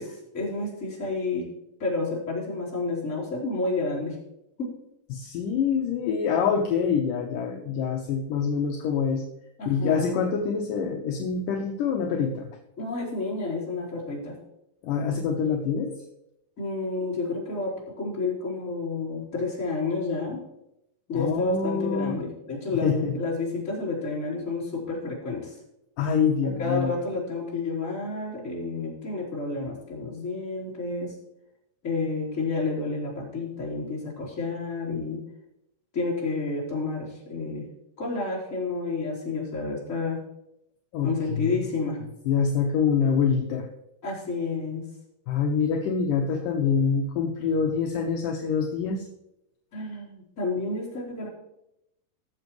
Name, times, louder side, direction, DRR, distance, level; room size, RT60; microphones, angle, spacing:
voice 1, 0.0-1.5 1.8-4.2 4.6-4.7 9.6-10.2 12.8-14.4 16.6-20.4 21.1-25.6 26.6-31.1 31.8-35.2 35.9-37.7 38.0-40.2 41.0-42.0 44.0-44.8 49.7-51.3, left 3 dB, 20° left, -7 dB, 4.1 m, -30 dB
voice 2, 5.1-9.2 9.7-12.5 14.8-15.9 21.1-22.1 22.8-23.2 26.0-26.9 40.9-41.5 42.3-43.7 45.3-49.1, left 6 dB, 75° left, 2 dB, 2.1 m, -25 dB
19.0 x 7.2 x 3.2 m, 0.84 s
omnidirectional pair, 4.6 m